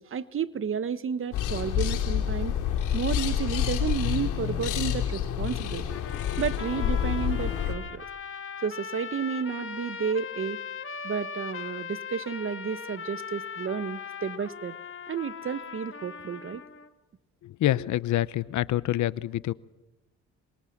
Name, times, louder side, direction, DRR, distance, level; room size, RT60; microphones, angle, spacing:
voice 1, 0.0-2.5 2.9-6.0 6.4-8.0 8.6-10.6 11.0-14.8 15.1-16.6, right 6 dB, 45° right, 14 dB, 1.2 m, -32 dB
sound 1, 1.3-7.7, left 9 dB, 90° left, 2.7 m, -28 dB
sound 2, 5.9-16.9, left 6 dB, 45° left, 1.8 m, -39 dB
voice 2, 17.6-19.5, left 14 dB, 70° left, 18 dB, 0.8 m, -26 dB
26.5 x 22.5 x 7.4 m, 1.0 s
cardioid pair, 90°, 30 cm